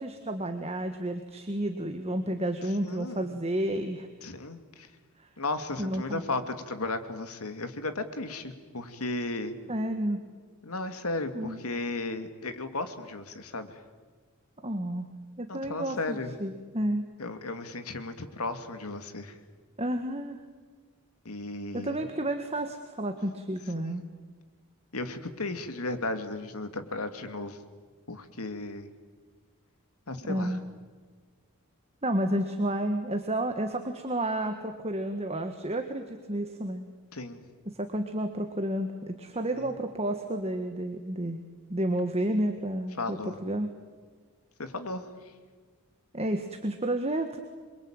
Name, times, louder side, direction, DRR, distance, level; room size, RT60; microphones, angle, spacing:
voice 1, 0.0-4.1 5.2-5.3 5.8-6.2 9.7-10.2 11.3-11.6 14.6-15.1 15.4-17.0 19.8-20.4 21.7-24.0 30.2-30.6 32.0-36.9 37.7-41.4 41.7-43.7 46.1-47.4, right 1 dB, 30° right, 6 dB, 1.6 m, -31 dB
voice 2, 2.8-3.3 4.2-4.9 5.4-9.5 10.6-13.8 15.5-16.3 17.2-19.4 21.2-22.0 23.8-24.0 24.9-27.6 28.1-28.9 30.1-30.6 37.1-37.4 39.5-39.7 43.0-43.4 44.6-45.1, left 2 dB, 80° left, 8 dB, 2.5 m, -35 dB
27.5 x 23.5 x 9.0 m, 1.5 s
head